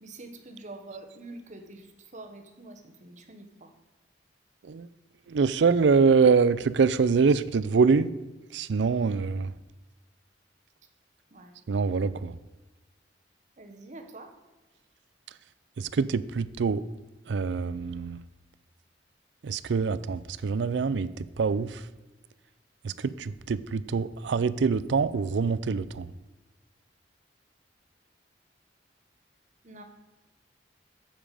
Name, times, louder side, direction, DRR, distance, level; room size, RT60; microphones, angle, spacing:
voice 1, 0.0-3.7 11.3-11.6 13.6-14.3 29.6-29.8, right 2 dB, 45° right, 5 dB, 1.1 m, -46 dB
voice 2, 5.3-8.1 8.5-9.5 11.7-12.4 15.8-16.8 17.3-18.2 19.4-21.8 22.8-26.1, right 5 dB, 75° right, 17 dB, 0.4 m, -25 dB
8.9 x 7.2 x 4.9 m, 1.2 s
head